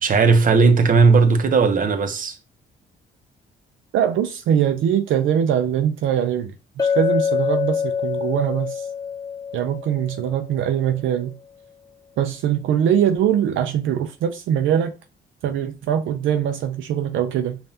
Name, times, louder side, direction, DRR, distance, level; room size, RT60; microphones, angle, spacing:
voice 1, 0.0-2.3, right 4 dB, 45° right, 0.8 m, -16 dB
voice 2, 3.9-8.9 9.5-11.3 12.2-14.9 15.4-17.6, right 9 dB, 75° right, 0.5 m, -22 dB
Chink clink, 6.8-10.8, left 6 dB, 20° left, 0.4 m, -25 dB
5.3 x 2.4 x 2.7 m
cardioid pair, 90°, 20 cm